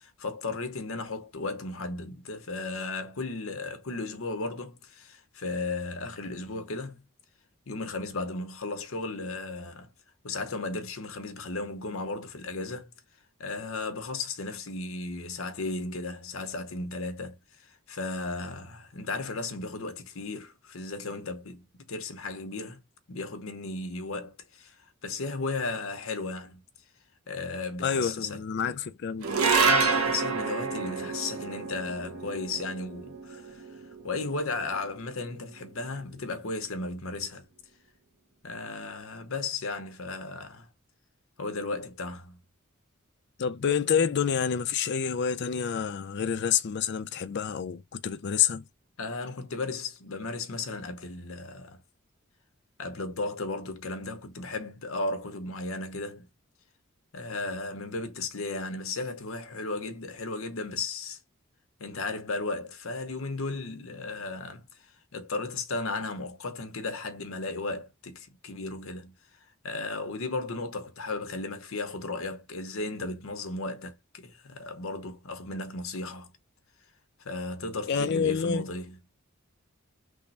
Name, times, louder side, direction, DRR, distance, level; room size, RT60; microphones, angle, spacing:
voice 1, 0.0-7.0 7.7-9.9 10.2-12.9 13.4-22.8 23.1-24.8 25.0-26.6 27.3-28.4 28.7-28.8 29.6-33.7 34.0-37.4 38.4-40.7 41.4-42.4 49.0-51.8 52.8-56.3 57.1-61.2 61.8-64.7 65.1-69.1 69.6-76.3 77.2-79.0, left 3 dB, 70° left, 0.9 m, -35 dB
voice 2, 27.8-29.4 43.4-48.6 77.9-78.7, left 7 dB, 55° left, 0.4 m, -28 dB
sound 1, 29.2-35.7, right 4 dB, 85° right, 0.8 m, -29 dB
3.6 x 2.0 x 4.0 m
head